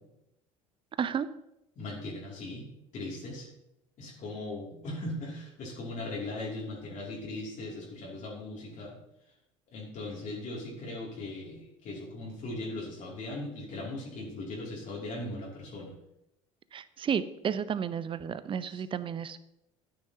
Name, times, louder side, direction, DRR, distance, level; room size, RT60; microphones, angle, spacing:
voice 1, 1.8-2.7 2.9-3.5 4.0-9.0 9.7-15.9 18.7-18.8, left 2 dB, 50° left, -2 dB, 2.8 m, -39 dB
voice 2, 16.7-19.4, right 7 dB, 30° right, 15 dB, 0.6 m, -32 dB
11.5 x 9.9 x 2.9 m, 0.84 s
hypercardioid pair, 65°, 17 cm